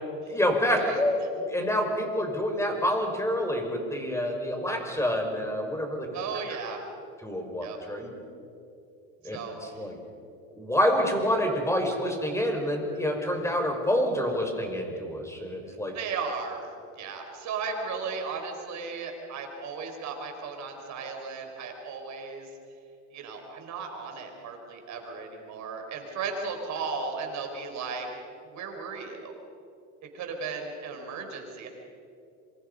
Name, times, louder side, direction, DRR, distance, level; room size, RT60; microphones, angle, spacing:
voice 1, 0.3-6.1 7.2-8.1 9.2-10.0 10.5-15.9, equal, 10° left, 3 dB, 5.5 m, -27 dB
voice 2, 6.1-6.8 7.6-7.8 9.2-9.8 15.6-16.6 17.0-22.5 23.1-28.1 28.4-29.3 30.1-31.7, right 5 dB, 55° right, 3 dB, 5.3 m, -36 dB
27.0 x 25.0 x 5.6 m, 2.7 s
supercardioid pair, 105°, 34 cm